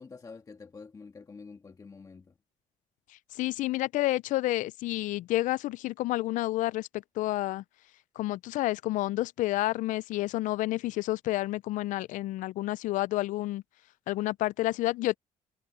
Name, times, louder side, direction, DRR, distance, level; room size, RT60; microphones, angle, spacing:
voice 1, 0.0-2.3, left 4 dB, 25° left, 1.6 m, -47 dB
voice 2, 3.3-7.6 8.2-13.6 14.1-15.2, left 17 dB, 70° left, 0.4 m, -30 dB
cardioid pair, 120°, 14 cm